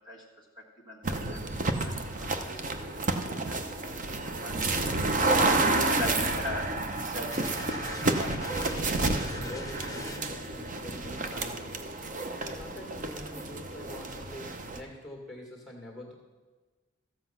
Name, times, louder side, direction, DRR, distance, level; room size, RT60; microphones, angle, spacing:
voice 1, 0.0-4.7 5.4-8.4, left 1 dB, 20° right, -3 dB, 1.8 m, -41 dB
sound 1, 1.0-14.8, right 2 dB, 40° right, 0.8 m, -30 dB
sound 2, 7.3-10.5, left 2 dB, 15° left, 1.0 m, -42 dB
voice 2, 9.0-12.1 12.4-16.1, left 1 dB, ahead, 0 dB, 1.9 m, -45 dB
13.5 x 7.8 x 5.6 m, 1.3 s
head